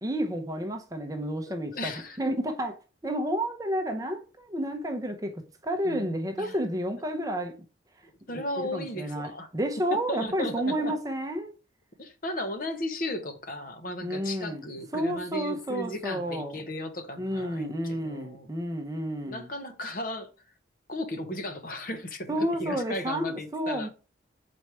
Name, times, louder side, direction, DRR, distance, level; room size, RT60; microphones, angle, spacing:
voice 1, 0.0-1.9 2.2-7.5 8.6-11.5 14.0-14.6 14.9-16.6 17.2-19.5 22.3-23.9, equal, 20° right, 0.7 m, -31 dB
voice 2, 1.5-2.2 5.8-6.6 8.3-9.5 10.1-11.0 12.0-18.5 19.3-20.3 20.9-23.9, left 1 dB, 45° left, 0.9 m, -35 dB
4.7 x 4.3 x 4.7 m
head